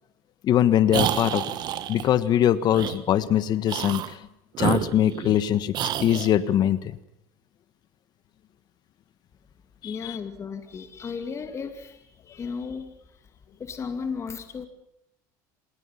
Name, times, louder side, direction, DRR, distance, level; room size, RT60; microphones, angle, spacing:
voice 1, 0.4-1.4 1.9-4.2 4.6-7.0 9.8-10.2, left 11 dB, 50° left, 14 dB, 1.4 m, -22 dB
sound 1, 0.9-2.1 2.7-3.0 3.6-4.1 4.5-5.4 5.7-6.3, right 11 dB, 50° right, 1.6 m, -28 dB
voice 2, 9.8-13.3 13.6-14.7, left 5 dB, 30° left, 7 dB, 2.5 m, -35 dB
27.0 x 21.0 x 5.8 m, 0.81 s
supercardioid pair, 100°, 9 cm